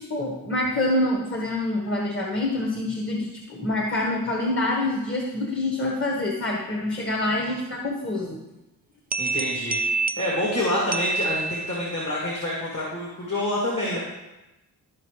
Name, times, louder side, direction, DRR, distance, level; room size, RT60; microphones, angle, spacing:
voice 1, 0.0-8.4, left 1 dB, 30° left, 0 dB, 1.5 m, -26 dB
sound 1, 9.1-12.1, right 4 dB, 20° right, 0.5 m, -28 dB
voice 2, 9.2-9.8 10.2-14.0, left 1 dB, 45° left, -5 dB, 2.6 m, -27 dB
13.0 x 5.0 x 3.2 m, 1.0 s
cardioid pair, 40°, 41 cm